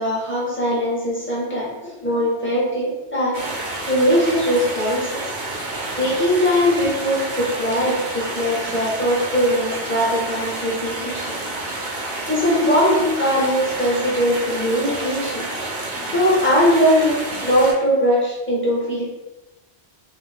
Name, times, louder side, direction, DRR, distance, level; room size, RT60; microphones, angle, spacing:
voice 1, 0.0-3.4 3.9-5.2 6.0-11.4 12.3-15.5 16.1-19.0, equal, 15° left, -7 dB, 0.6 m, -20 dB
sound 1, 3.3-17.7, right 2 dB, 55° right, 0.6 m, -29 dB
2.4 x 2.0 x 3.2 m, 1.0 s
omnidirectional pair, 1.1 m